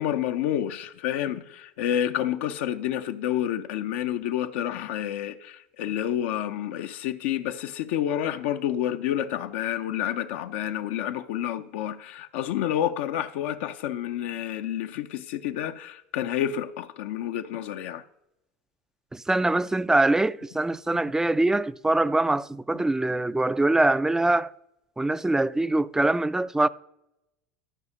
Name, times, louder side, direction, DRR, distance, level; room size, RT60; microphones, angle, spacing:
voice 1, 0.0-18.0, left 11 dB, 70° left, 0.5 m, -29 dB
voice 2, 19.1-24.5 25.0-26.7, right 2 dB, 10° right, 0.3 m, -23 dB
12.5 x 4.9 x 5.4 m
hypercardioid pair, 85°, 7 cm